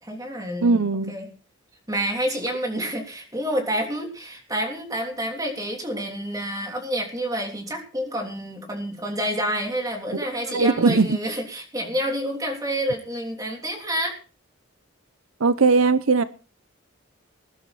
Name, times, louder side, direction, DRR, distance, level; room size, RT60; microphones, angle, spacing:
voice 1, 0.0-1.3 1.9-14.2, equal, 15° right, 2 dB, 3.3 m, -28 dB
voice 2, 0.6-1.1 10.5-11.2 15.4-16.2, right 4 dB, 85° right, 14 dB, 0.8 m, -19 dB
20.0 x 11.5 x 4.2 m, 0.36 s
head